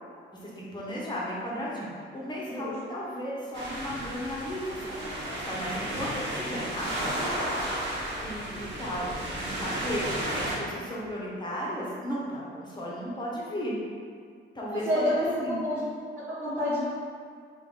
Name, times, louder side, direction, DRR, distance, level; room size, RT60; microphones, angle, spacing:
voice 1, 0.4-13.8 14.5-15.6, equal, 20° left, -5 dB, 1.1 m, -35 dB
sound 1, 3.5-10.6, right 1 dB, 65° right, 1.2 m, -33 dB
voice 2, 14.7-15.1 15.4-15.8 16.4-16.8, left 1 dB, 5° left, -14 dB, 1.4 m, -28 dB
3.5 x 2.6 x 3.9 m, 2.1 s
cardioid pair, 90°, 20 cm